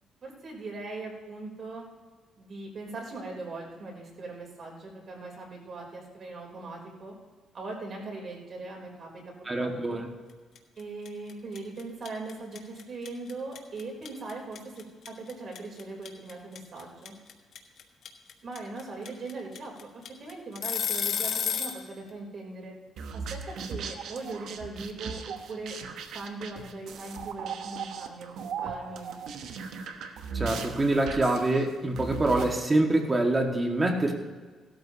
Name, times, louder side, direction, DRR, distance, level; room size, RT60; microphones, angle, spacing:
voice 1, 0.2-1.8 2.4-7.2 7.5-10.0 10.8-17.1 18.4-22.7 23.1-25.8 26.1-29.3, right 3 dB, 50° right, -1 dB, 3.5 m, -40 dB
voice 2, 9.5-10.1 30.3-34.1, right 2 dB, 25° right, 2 dB, 1.8 m, -25 dB
sound 1, 10.5-10.8 11.0-21.8, left 8 dB, 70° left, 1.3 m, -31 dB
sound 2, 23.0-32.6, right 6 dB, 75° right, 1.0 m, -38 dB
17.5 x 13.0 x 2.9 m, 1.4 s
cardioid pair, 90°, 0 cm